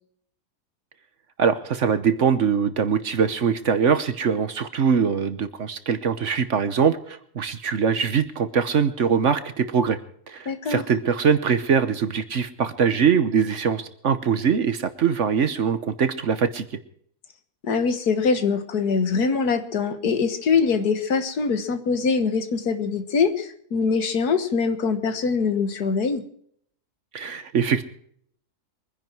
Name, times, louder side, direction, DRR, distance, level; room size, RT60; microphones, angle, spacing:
voice 1, 1.4-10.0 10.3-16.7 27.1-27.8, right 6 dB, 55° right, 12 dB, 1.2 m, -22 dB
voice 2, 10.5-10.8 17.6-26.2, left 5 dB, 75° left, 10 dB, 1.9 m, -23 dB
23.5 x 10.5 x 4.6 m, 0.65 s
omnidirectional pair, 1.7 m